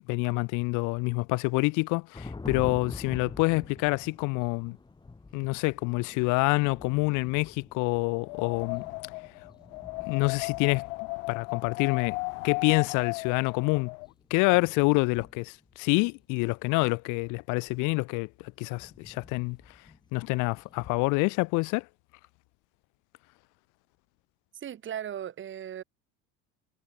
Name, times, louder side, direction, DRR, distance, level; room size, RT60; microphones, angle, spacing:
voice 1, 0.1-4.8 5.3-8.8 10.0-10.8 11.3-12.2 12.4-13.9 14.3-18.3 18.6-19.6 20.1-21.9, left 27 dB, 60° left, 0.5 m, -27 dB
sound 1, 2.1-15.8 16.2-16.6 17.2-17.9 18.6-21.1, left 3 dB, 15° left, 2.8 m, -47 dB
Wind, 8.1-14.1, left 34 dB, 85° left, 1.8 m, -36 dB
voice 2, 24.6-25.8, right 10 dB, 35° right, 1.7 m, -37 dB
cardioid pair, 130°, 34 cm